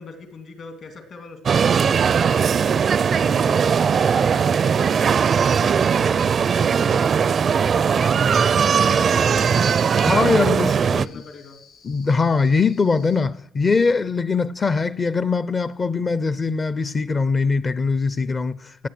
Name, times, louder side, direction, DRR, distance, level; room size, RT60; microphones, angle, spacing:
voice 1, 0.0-5.1 5.6-7.2 7.6-11.6 13.6-13.9, left 4 dB, 55° left, 2.7 m, -41 dB
sound 1, 1.5-11.1, right 6 dB, 50° right, 0.5 m, -19 dB
sound 2, 2.0-13.2, left 6 dB, 80° left, 5.0 m, -52 dB
voice 2, 9.9-11.1 11.8-18.9, left 4 dB, 35° left, 0.6 m, -22 dB
17.0 x 8.6 x 7.8 m
cardioid pair, 95°, 0 cm